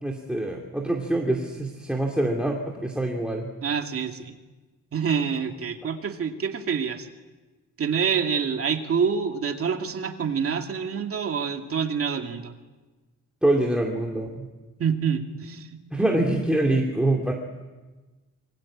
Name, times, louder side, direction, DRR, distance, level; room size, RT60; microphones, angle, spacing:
voice 1, 0.0-3.5 13.4-14.5 15.9-17.3, right 1 dB, 5° right, 1 dB, 2.6 m, -25 dB
voice 2, 3.6-4.3 4.9-7.1 7.8-12.5 14.8-15.8, right 6 dB, 45° right, 4 dB, 2.4 m, -27 dB
27.5 x 25.0 x 8.7 m, 1.2 s
wide cardioid pair, 170°, 31 cm